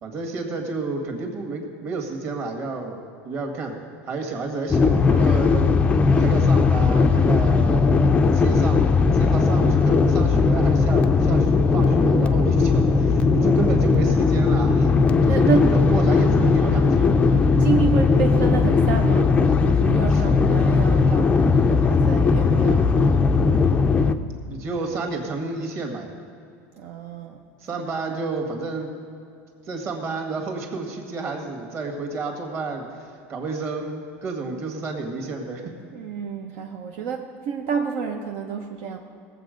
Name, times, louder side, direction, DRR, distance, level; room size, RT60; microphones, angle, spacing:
voice 1, 0.0-3.0 3.2-3.7 4.1-5.8 6.1-8.0 8.3-14.9 15.2-17.3 24.4-26.1 27.6-28.9 29.7-32.9 33.3-35.6, right 3 dB, 35° right, 3 dB, 1.9 m, -30 dB
sound 1, 4.7-24.1, left 4 dB, 15° left, 0.4 m, -18 dB
voice 2, 15.3-15.8 16.2-16.5 17.2-19.4 19.6-23.2 26.8-27.4 35.9-39.0, right 5 dB, 65° right, 2 dB, 0.9 m, -28 dB
18.5 x 7.6 x 5.2 m, 2.6 s
supercardioid pair, 150°, 7 cm